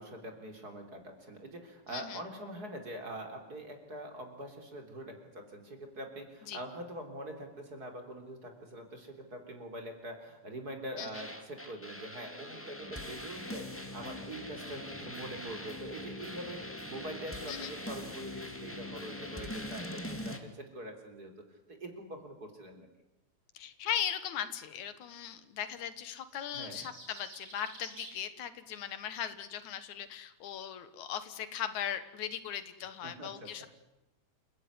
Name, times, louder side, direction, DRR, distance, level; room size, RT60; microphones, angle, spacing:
voice 1, 0.0-21.3 21.7-22.9 26.5-26.9 33.0-33.7, right 1 dB, 30° right, 4 dB, 3.8 m, -44 dB
sound 1, 11.1-20.4, left 1 dB, 5° left, 1.7 m, -42 dB
voice 2, 23.5-33.7, left 9 dB, 85° left, 12 dB, 2.9 m, -38 dB
sound 2, 26.1-28.2, right 2 dB, 65° right, 8.2 m, -50 dB
28.5 x 16.5 x 9.7 m, 0.95 s
omnidirectional pair, 3.3 m